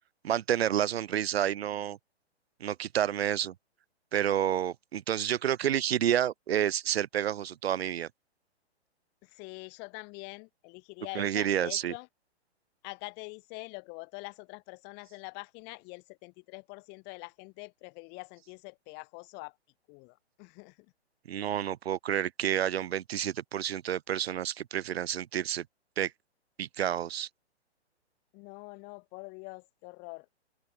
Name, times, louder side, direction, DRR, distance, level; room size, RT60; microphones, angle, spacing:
voice 1, 0.2-2.0 2.6-3.5 4.1-8.1 11.1-11.9 21.3-25.6 26.0-26.1 26.6-27.3, right 10 dB, 65° right, 1.4 m, -29 dB
voice 2, 9.2-12.1 12.8-19.5 19.9-20.9 28.3-30.3, left 31 dB, 30° left, 3.4 m, -45 dB
open air
hypercardioid pair, 140°, 34 cm